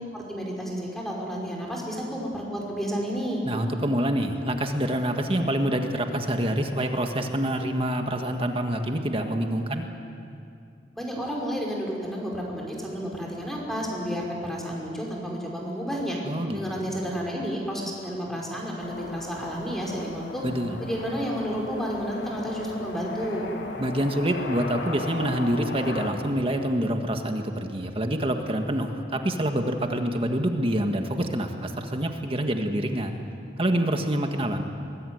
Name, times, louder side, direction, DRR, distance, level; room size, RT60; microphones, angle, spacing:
voice 1, 0.1-3.4 11.0-16.2 16.5-20.4 20.8-23.4, equal, ahead, -2 dB, 5.0 m, -31 dB
voice 2, 3.4-9.9 16.2-17.0 20.4-20.8 23.8-33.2 33.6-34.6, right 1 dB, 30° right, 5 dB, 1.7 m, -26 dB
sound 1, 18.8-26.1, left 2 dB, 85° left, 2.9 m, -37 dB
23.0 x 21.0 x 9.5 m, 2.5 s
head